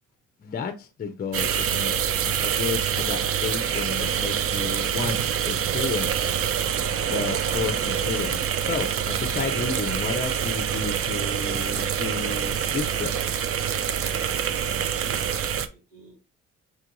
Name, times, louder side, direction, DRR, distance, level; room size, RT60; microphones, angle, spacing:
voice 1, 0.4-5.2 5.5-6.1 7.1-13.1, left 5 dB, 30° left, 0.6 m, -32 dB
sound 1, 1.3-15.7, right 8 dB, 50° right, 0.5 m, -26 dB
sound 2, 7.4-15.5, right 2 dB, 25° right, 0.8 m, -43 dB
voice 2, 14.0-16.2, right 3 dB, 90° right, 1.5 m, -47 dB
6.0 x 2.4 x 2.9 m
cardioid pair, 90°, 30 cm